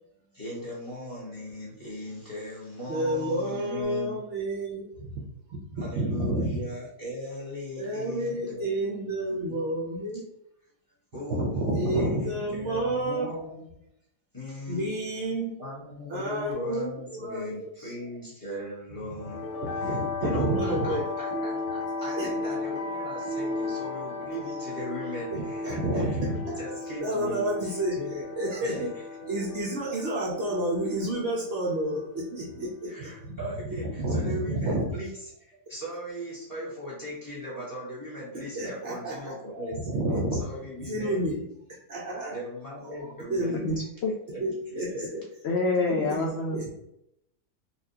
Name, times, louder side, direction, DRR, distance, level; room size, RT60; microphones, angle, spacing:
voice 1, 0.3-4.2 5.8-9.6 11.1-13.6 14.3-14.9 15.6-28.3 28.6-29.1 32.9-39.8 40.3-41.3 42.3-43.7 44.3-45.1, equal, 15° left, -7 dB, 1.2 m, -39 dB
voice 2, 2.9-5.1 5.5-6.5 7.8-10.3 11.3-13.3 14.7-15.5 16.1-17.9 19.6-21.1 22.2-22.3 25.3-26.6 27.0-28.0 28.4-28.9 29.3-33.4 34.0-34.8 38.3-39.3 39.9-40.4 40.8-41.4 41.9-42.3 43.3-43.8 44.4-45.2 45.9-46.2 46.5-46.7, right 1 dB, 60° right, -2 dB, 0.8 m, -30 dB
sound 1, 19.2-33.3, left 3 dB, 55° left, 1.2 m, -35 dB
voice 3, 43.6-44.1 45.4-46.7, left 3 dB, 70° left, -1 dB, 0.6 m, -27 dB
4.1 x 2.4 x 2.7 m, 0.78 s
omnidirectional pair, 1.6 m